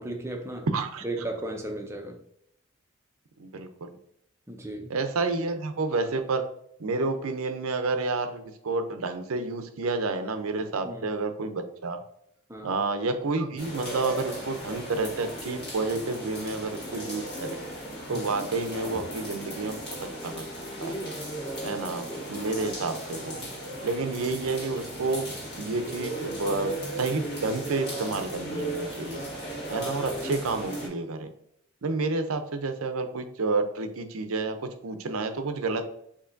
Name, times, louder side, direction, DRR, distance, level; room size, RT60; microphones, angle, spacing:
voice 1, 0.0-0.7 1.0-2.2 4.5-4.9 10.8-11.1 12.5-12.8 18.1-18.2, right 1 dB, 15° right, 3 dB, 0.5 m, -35 dB
voice 2, 0.7-1.0 3.4-3.9 4.9-6.5 6.8-12.0 12.6-17.6 18.1-20.0 20.2-20.5 20.8-21.0 21.6-23.4 23.8-25.3 25.6-29.2 29.7-31.3 31.8-35.8, right 3 dB, 75° right, 8 dB, 0.6 m, -30 dB
sound 1, 13.6-30.9, right 1 dB, 45° left, 1.7 m, -36 dB
6.8 x 2.8 x 2.5 m, 0.73 s
head